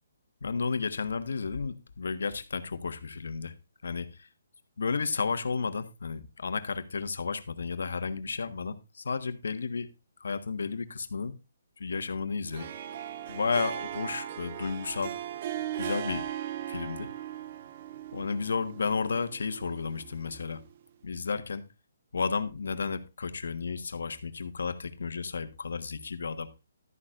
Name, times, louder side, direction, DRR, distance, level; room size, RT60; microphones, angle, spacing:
voice 1, 0.4-3.5 3.8-4.3 4.8-9.9 10.2-11.4 11.8-12.7 13.3-15.1 15.8-16.2 16.7-17.1 18.1-20.6 21.0-21.6 22.1-26.5, left 5 dB, 80° left, 1.4 m, -32 dB
Harp, 12.5-20.7, right 11 dB, 35° right, 0.6 m, -38 dB
12.5 x 10.0 x 2.5 m
hypercardioid pair, 170°, 0 cm